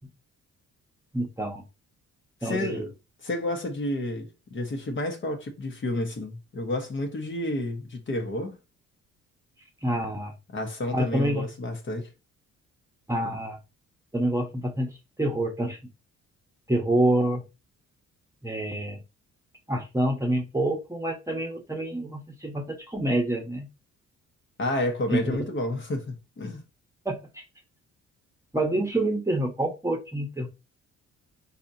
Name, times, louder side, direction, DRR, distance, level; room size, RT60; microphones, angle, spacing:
voice 1, 1.1-1.6 2.4-2.9 9.8-10.3 10.9-11.5 13.1-13.6 14.1-14.9 15.2-15.8 16.7-17.4 18.4-19.0 19.7-23.7 25.1-25.4 27.0-27.4 28.5-30.5, right 1 dB, 10° right, 1.1 m, -27 dB
voice 2, 2.4-2.9 3.2-8.6 10.5-12.1 24.6-26.6, left 1 dB, 40° left, 1.4 m, -30 dB
4.3 x 4.1 x 2.8 m
cardioid pair, 90°, 30 cm